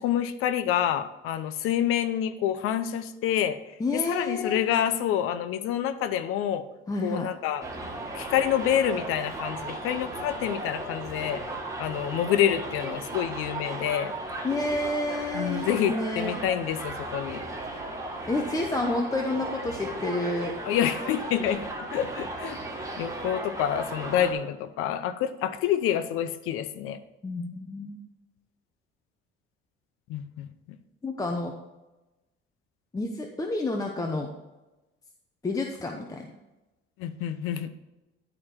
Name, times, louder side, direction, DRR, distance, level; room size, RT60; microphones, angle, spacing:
voice 1, 0.0-3.6 3.9-6.6 7.0-7.6 8.1-11.4 11.8-14.1 15.3-17.4 20.7-22.6 23.0-27.0 30.1-30.8 37.0-37.7, left 10 dB, 85° left, 11 dB, 0.8 m, -27 dB
voice 2, 3.8-4.6 6.9-7.3 14.4-16.4 18.3-20.5 27.2-28.0 31.0-31.5 32.9-34.3 35.4-36.3, left 2 dB, 15° left, 2 dB, 0.8 m, -29 dB
Subway metro underground, 7.6-24.3, right 2 dB, 15° right, 1.6 m, -36 dB
11.0 x 5.0 x 4.4 m, 1.0 s
cardioid pair, 125°, 21 cm